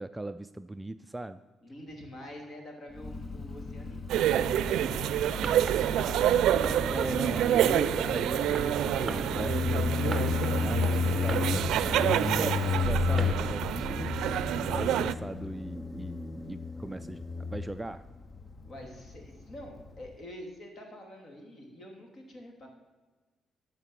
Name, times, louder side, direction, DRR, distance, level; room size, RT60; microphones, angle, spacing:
voice 1, 0.0-1.4 6.9-14.1 14.7-18.0, right 2 dB, 10° right, 10 dB, 0.3 m, -38 dB
voice 2, 1.6-6.2 12.6-13.0 18.7-22.7, equal, 45° left, 2 dB, 2.7 m, -47 dB
Motorcycle, 2.9-20.2, left 5 dB, 25° left, 0.7 m, -33 dB
sound 1, 4.1-15.1, right 11 dB, 85° right, 0.4 m, -28 dB
Fireworks, 4.4-14.4, right 3 dB, 25° right, 0.9 m, -44 dB
12.5 x 5.3 x 7.5 m, 1.3 s
cardioid pair, 125°, 0 cm